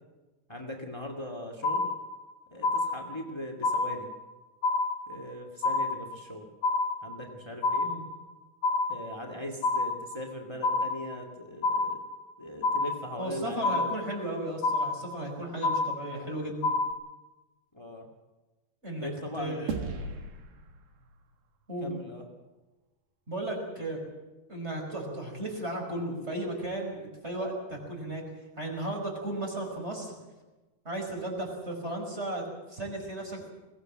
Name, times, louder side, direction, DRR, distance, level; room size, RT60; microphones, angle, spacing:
voice 1, 0.5-1.9 2.5-4.1 5.1-6.5 7.0-7.9 8.9-12.0 12.4-14.0 17.7-18.1 19.0-20.2 21.8-22.2, left 1 dB, 45° left, 2 dB, 0.3 m, -40 dB
sound 1, 1.6-2.3 2.6-3.3 3.6-4.3 4.6-5.3 5.6-6.3 6.6-7.3 7.6-8.3 8.6-9.3 9.6-10.3 10.6-11.3 11.6-12.3 12.6-13.3 13.6-14.3 14.6-15.3 15.6-16.3 16.6-16.9, left 3 dB, 75° left, 3.1 m, -28 dB
voice 2, 13.2-16.7 18.8-19.1 19.4-19.7 21.7-21.9 23.3-24.0 24.5-28.2 28.6-30.1 30.9-33.5, right 1 dB, 15° right, 1 dB, 5.2 m, -35 dB
sound 2, 19.7-22.3, right 4 dB, 70° right, 3.5 m, -39 dB
21.5 x 18.0 x 7.8 m, 1.2 s
omnidirectional pair, 4.6 m